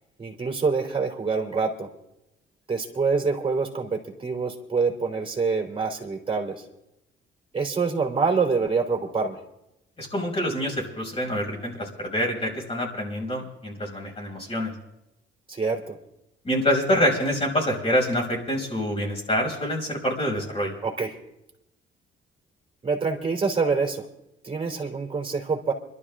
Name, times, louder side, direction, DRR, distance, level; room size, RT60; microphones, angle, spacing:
voice 1, 0.2-1.9 2.7-6.6 7.5-9.4 15.5-16.0 20.8-21.1 22.8-24.0 24.4-25.7, right 4 dB, 25° right, 2 dB, 3.8 m, -26 dB
voice 2, 10.0-14.7 16.4-20.7, equal, 30° left, -2 dB, 5.3 m, -26 dB
25.5 x 12.5 x 3.8 m, 0.86 s
cardioid pair, 90°, 20 cm